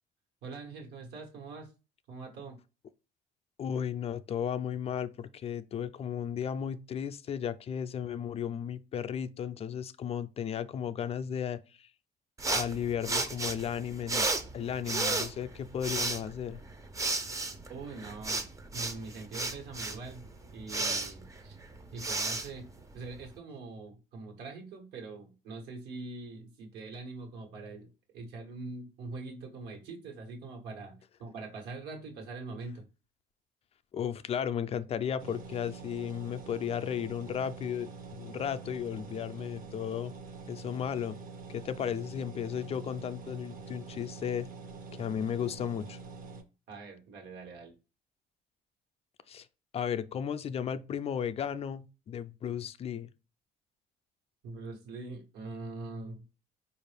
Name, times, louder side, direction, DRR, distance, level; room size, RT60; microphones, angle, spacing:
voice 1, 0.4-1.7 2.1-2.6 17.7-18.4 18.7-20.2 20.5-21.6 21.9-32.9 46.7-47.7 54.4-56.2, right 3 dB, 80° right, 1.3 m, -43 dB
voice 2, 3.6-11.9 12.5-14.3 14.5-16.6 33.9-37.9 38.2-40.1 40.5-41.2 41.5-44.5 45.0-46.0 49.3-49.5 49.7-53.1, left 8 dB, 35° left, 0.4 m, -34 dB
sound 1, 12.4-23.3, right 3 dB, 20° right, 0.5 m, -34 dB
sound 2, 35.2-46.4, right 4 dB, 55° right, 0.8 m, -46 dB
4.7 x 2.5 x 3.3 m
cardioid pair, 110°, 17 cm